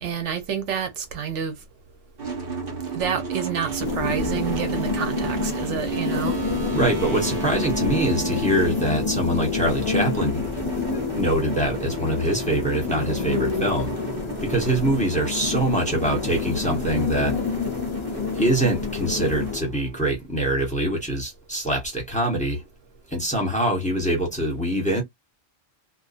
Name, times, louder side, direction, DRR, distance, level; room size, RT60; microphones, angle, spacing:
voice 1, 0.0-1.6 2.9-6.4, right 7 dB, 85° right, 1.1 m, -28 dB
sound 1, 2.2-20.1, right 5 dB, 55° right, 1.2 m, -34 dB
sound 2, 3.8-19.6, left 5 dB, 30° left, 0.6 m, -28 dB
voice 2, 6.7-10.5 10.8-13.9 14.4-17.4 18.4-22.6 23.1-25.0, right 1 dB, 5° left, 1.0 m, -24 dB
2.6 x 2.2 x 2.4 m
omnidirectional pair, 1.2 m